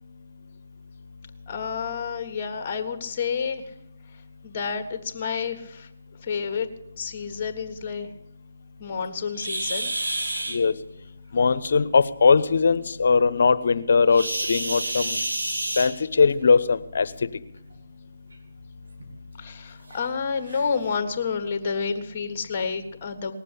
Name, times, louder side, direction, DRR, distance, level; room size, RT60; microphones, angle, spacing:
voice 1, 1.5-3.6 4.4-5.9 6.2-6.7 7.0-8.1 8.8-9.9 11.3-11.4 19.4-23.3, left 5 dB, 35° left, 8 dB, 1.6 m, -29 dB
sound 1, 9.3-10.6 14.1-16.3 17.6-17.8 18.3-18.4 19.0-19.1 19.9-20.0 20.5-20.7, right 1 dB, 90° right, 3.1 m, -29 dB
voice 2, 11.3-15.2 15.8-17.1, left 5 dB, 60° left, 15 dB, 0.8 m, -20 dB
19.0 x 7.4 x 8.5 m, 0.84 s
figure-of-eight pair, 155°, 0 cm